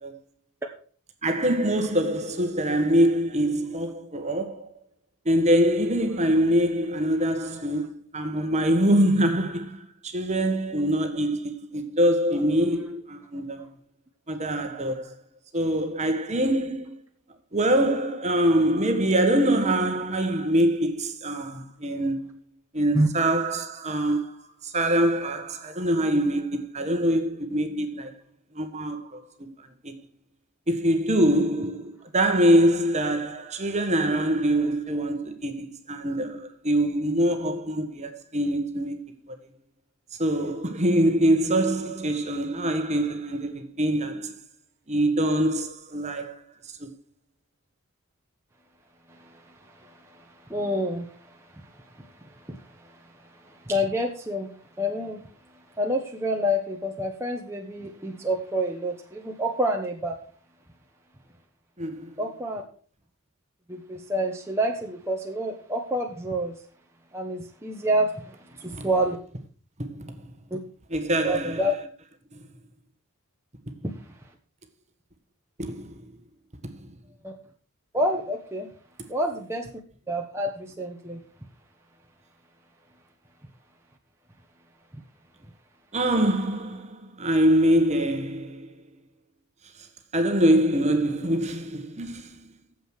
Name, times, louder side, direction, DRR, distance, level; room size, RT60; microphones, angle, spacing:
voice 1, 1.2-4.7 5.2-13.7 14.3-15.1 15.5-17.0 17.5-22.3 22.7-24.4 24.6-28.1 28.5-29.2 29.8-29.9 30.7-39.3 40.2-44.4 44.9-46.4 46.8-46.9 61.8-62.2 68.6-68.8 69.8-70.2 70.9-71.7 72.3-72.4 75.6-76.1 76.7-76.9 85.9-88.8 90.1-92.4, right 1 dB, 30° right, 1.5 m, -24 dB
voice 2, 49.8-50.2 50.5-51.1 51.5-51.6 52.5-52.6 52.8-52.9 53.4-54.5 54.8-55.2 55.8-60.2 62.2-62.6 63.7-66.6 67.1-69.2 70.5-70.6 71.2-71.7 77.2-77.3 77.9-78.7 79.1-79.7 80.1-81.2, equal, 10° right, 1.2 m, -28 dB
9.1 x 7.7 x 6.4 m
head